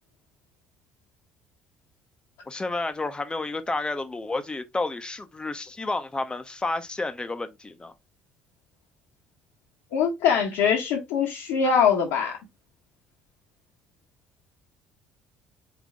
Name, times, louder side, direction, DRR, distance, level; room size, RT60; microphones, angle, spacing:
voice 1, 2.5-7.9, left 2 dB, 20° left, 0.8 m, -31 dB
voice 2, 9.9-12.4, left 7 dB, 70° left, 1.2 m, -22 dB
4.0 x 3.7 x 3.6 m
hypercardioid pair, 55°, 5 cm